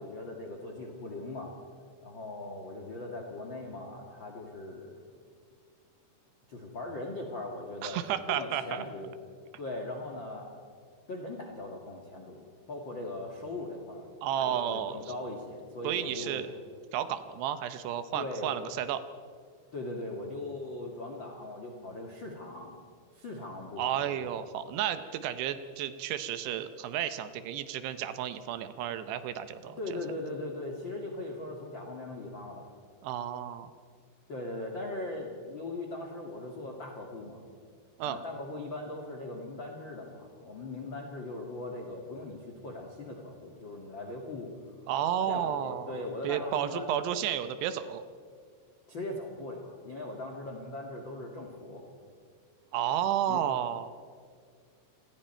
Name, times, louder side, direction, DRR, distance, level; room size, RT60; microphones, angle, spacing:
voice 1, 0.0-1.5 2.0-4.9 6.5-8.0 8.3-9.1 9.6-10.5 11.1-16.5 18.1-18.6 19.7-22.7 23.1-24.2 29.8-32.7 34.3-37.4 38.0-44.5 45.3-47.0 48.9-51.8 53.3-53.4, left 2 dB, 45° left, 0 dB, 1.5 m, -39 dB
voice 2, 7.8-8.8 14.2-15.0 15.8-16.5 16.9-19.0 23.8-29.8 33.0-33.7 38.0-38.2 44.9-46.0 46.2-48.0 52.7-53.9, right 10 dB, 75° right, 11 dB, 2.7 m, -32 dB
28.0 x 20.5 x 4.4 m, 2.1 s
omnidirectional pair, 5.4 m